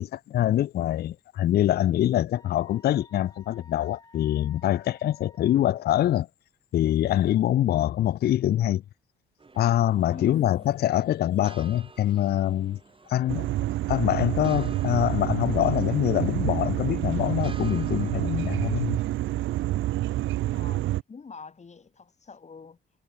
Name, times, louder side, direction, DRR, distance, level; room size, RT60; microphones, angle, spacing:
voice 1, 0.0-6.3 6.7-8.8 9.6-12.8 13.1-13.5 13.9-19.0, left 12 dB, 55° left, 0.4 m, -24 dB
Wind instrument woodwind instrument, 2.4-5.8, left 2 dB, 20° left, 7.5 m, -55 dB
sound 1, 9.4-19.5, right 4 dB, 25° right, 4.0 m, -52 dB
voice 2, 10.0-10.7 20.5-22.8, left 5 dB, 35° left, 6.4 m, -44 dB
sound 2, 13.3-21.0, right 15 dB, 75° right, 0.6 m, -28 dB
cardioid pair, 90°, 20 cm